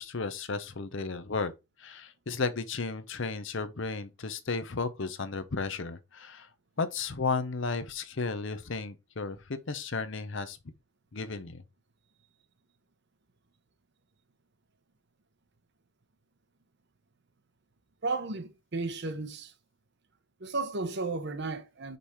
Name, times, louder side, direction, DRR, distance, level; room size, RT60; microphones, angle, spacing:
voice 1, 0.0-1.5 1.8-6.5 6.8-10.6 11.1-11.6, left 4 dB, 55° left, 0.7 m, -34 dB
voice 2, 18.0-19.5 20.4-22.0, right 3 dB, 50° right, 0.8 m, -34 dB
5.3 x 4.3 x 4.7 m
head